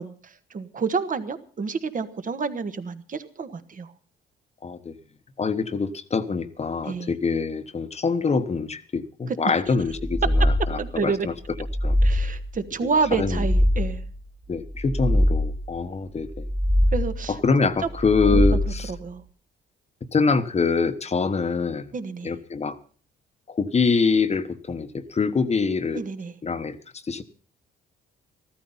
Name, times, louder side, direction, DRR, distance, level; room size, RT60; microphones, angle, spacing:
voice 1, 0.0-3.9 6.8-7.1 9.3-9.4 10.8-11.3 12.0-14.0 16.9-17.4 18.2-18.5 18.9-19.2 21.9-22.3 25.9-26.3, right 5 dB, 40° right, 10 dB, 1.5 m, -29 dB
voice 2, 4.6-5.0 5.4-11.3 11.8-12.0 12.8-13.5 14.5-16.5 17.3-18.9 20.1-21.9 22.2-22.8 23.5-26.0 26.4-26.8 27.1-27.2, left 4 dB, 35° left, 11 dB, 1.1 m, -25 dB
sound 1, 9.9-11.0 11.5-12.6 13.1-14.2 14.7-15.8 16.3-17.4 17.9-19.0, left 1 dB, 25° right, 1.9 m, -23 dB
14.5 x 13.0 x 5.6 m, 0.41 s
cardioid pair, 90°, 20 cm